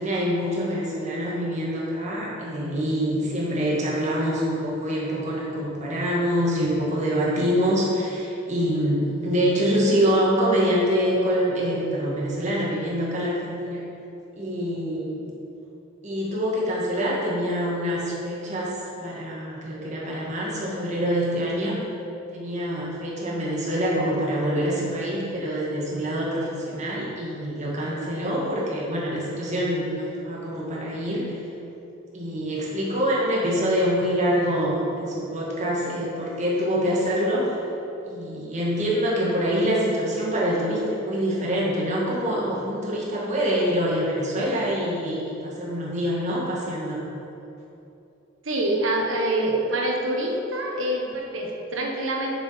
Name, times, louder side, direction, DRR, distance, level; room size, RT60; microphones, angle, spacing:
voice 1, 0.0-13.9 14.3-15.3 16.0-21.8 22.3-31.4 32.1-37.6 38.0-47.1, equal, 35° right, -5 dB, 1.7 m, -25 dB
voice 2, 48.4-52.3, right 1 dB, 85° right, 0 dB, 1.3 m, -25 dB
7.0 x 6.9 x 5.7 m, 2.9 s
head